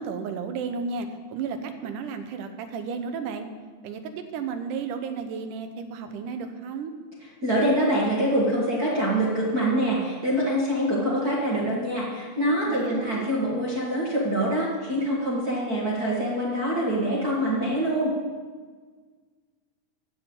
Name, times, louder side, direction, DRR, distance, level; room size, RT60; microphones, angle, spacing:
voice 1, 0.0-3.5 3.8-6.9 12.7-13.2, right 5 dB, 90° right, 7 dB, 2.5 m, -33 dB
voice 2, 7.4-18.1, right 1 dB, 35° right, -6 dB, 1.9 m, -25 dB
13.5 x 4.7 x 8.8 m, 1.5 s
omnidirectional pair, 3.6 m